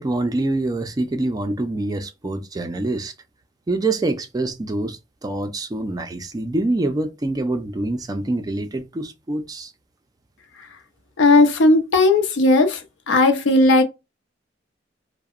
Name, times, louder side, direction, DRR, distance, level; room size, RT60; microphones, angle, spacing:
voice 1, 0.0-3.1 3.7-9.7, right 2 dB, 20° right, 0.3 m, -25 dB
voice 2, 11.2-12.8 13.1-13.8, left 2 dB, 80° left, 0.5 m, -15 dB
2.7 x 2.0 x 2.3 m
head